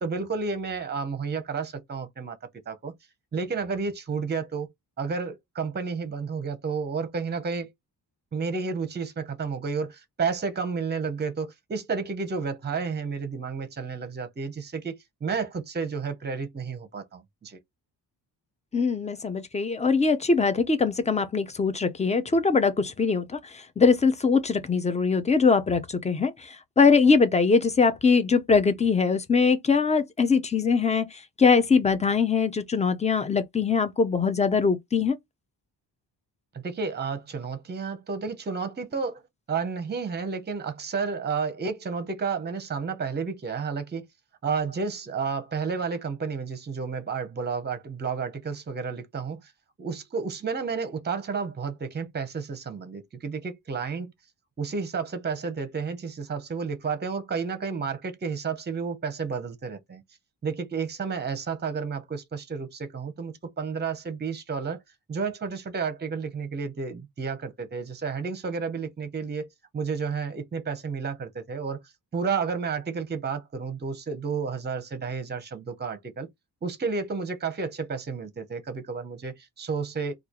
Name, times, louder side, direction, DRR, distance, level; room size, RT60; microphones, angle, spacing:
voice 1, 0.0-2.4 2.7-2.9 3.3-4.7 5.0-7.7 8.3-17.6 36.5-39.2 39.5-44.1 44.4-49.5 49.8-54.1 54.6-60.0 60.4-64.8 65.1-71.8 72.1-76.3 76.6-80.1, right 5 dB, 25° right, 0.6 m, -31 dB
voice 2, 18.7-23.4 23.8-26.3 26.8-31.1 31.4-35.2, left 5 dB, 15° left, 0.4 m, -22 dB
3.0 x 2.4 x 3.7 m
wide cardioid pair, 160°, 42 cm